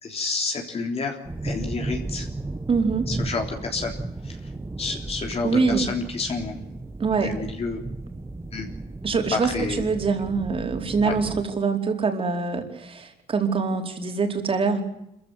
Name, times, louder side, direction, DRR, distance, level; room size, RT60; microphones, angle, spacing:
voice 1, 0.0-2.3 3.1-4.0 4.2-4.5 4.8-6.7 7.2-7.8 8.5-8.7 9.3-9.9 11.0-11.2, left 4 dB, 35° left, 2 dB, 3.6 m, -30 dB
sound 1, 1.2-11.4, right 2 dB, 15° right, 1.5 m, -34 dB
voice 2, 2.7-3.1 5.4-5.9 7.0-7.3 9.0-14.8, right 4 dB, 35° right, 5 dB, 4.7 m, -24 dB
26.5 x 15.5 x 9.3 m, 0.82 s
cardioid pair, 110°, 17 cm